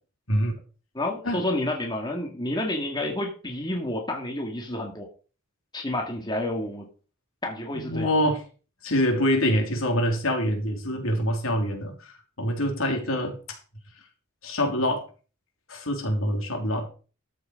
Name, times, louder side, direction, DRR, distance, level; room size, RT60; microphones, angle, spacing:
voice 1, 0.9-5.1 5.7-6.9 7.4-8.1, left 1 dB, 20° left, 2 dB, 2.0 m, -29 dB
voice 2, 7.7-8.4 8.8-13.6 14.4-15.0 15.7-16.9, equal, 70° left, 3 dB, 3.5 m, -25 dB
13.5 x 6.4 x 5.2 m, 0.37 s
head